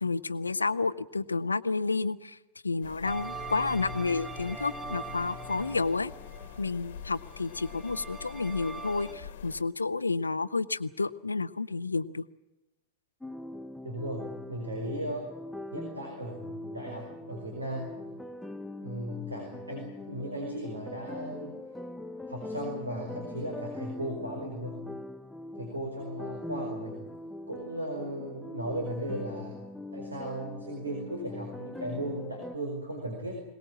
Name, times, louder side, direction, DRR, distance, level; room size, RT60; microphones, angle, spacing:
voice 1, 0.0-2.4 2.6-6.1 6.6-12.2, left 3 dB, 80° left, 15 dB, 0.7 m, -30 dB
sound 1, 2.8-9.6, left 8 dB, 60° left, 1.4 m, -46 dB
sound 2, 3.0-9.1, right 3 dB, 15° right, 6.1 m, -42 dB
sound 3, 13.2-32.6, left 1 dB, 5° left, 0.7 m, -42 dB
voice 2, 13.8-15.3 15.7-18.0 18.8-21.6 22.3-24.8 25.6-27.0 27.5-29.6 29.9-33.4, right 1 dB, 80° right, 2 dB, 4.8 m, -36 dB
22.5 x 19.5 x 8.6 m, 0.99 s
figure-of-eight pair, 90°, 0 cm